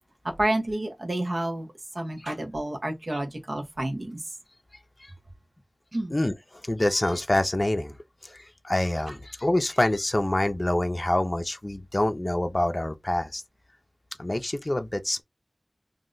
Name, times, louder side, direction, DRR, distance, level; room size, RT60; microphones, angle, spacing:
voice 1, 0.4-1.7 2.0-4.2 5.9-6.1, right 1 dB, 75° right, 0.8 m, -29 dB
voice 2, 6.7-8.0 8.2-13.4 14.2-15.2, left 1 dB, 45° left, 0.4 m, -26 dB
2.6 x 2.0 x 3.8 m
wide cardioid pair, 45°, 0 cm